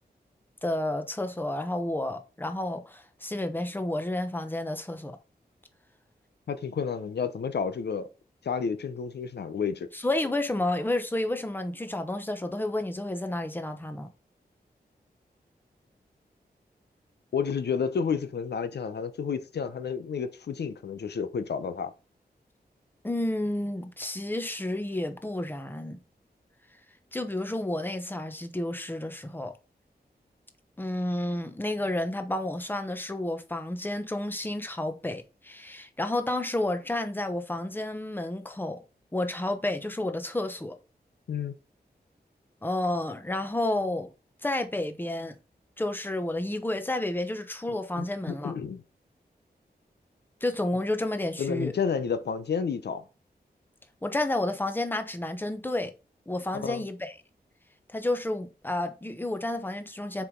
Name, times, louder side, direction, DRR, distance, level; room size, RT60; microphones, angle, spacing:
voice 1, 0.6-5.2 9.9-14.1 23.0-26.0 27.1-29.5 30.8-38.8 39.1-40.8 42.6-44.1 44.4-45.3 45.8-48.5 50.4-51.7 54.0-55.9 56.3-57.1 57.9-60.2, left 1 dB, 10° left, 0.9 m, -31 dB
voice 2, 6.5-8.1 8.4-9.9 17.3-21.9 41.3-41.5 48.0-48.8 51.4-53.0 56.5-56.8, left 6 dB, 90° left, 0.7 m, -30 dB
6.7 x 4.9 x 3.8 m
wide cardioid pair, 120°, 17 cm